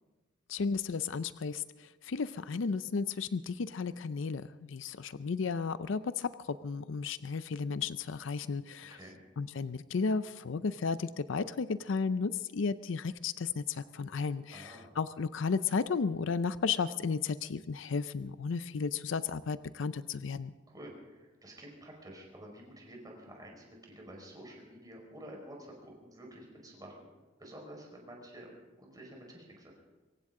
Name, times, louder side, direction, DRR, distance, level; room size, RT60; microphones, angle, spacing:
voice 1, 0.5-9.0 9.4-20.5, left 5 dB, 70° left, 14 dB, 0.5 m, -34 dB
voice 2, 14.5-15.0 20.7-27.1 27.4-28.5 28.8-29.7, right 1 dB, 20° right, 0 dB, 4.7 m, -50 dB
25.0 x 15.5 x 3.7 m, 1.2 s
head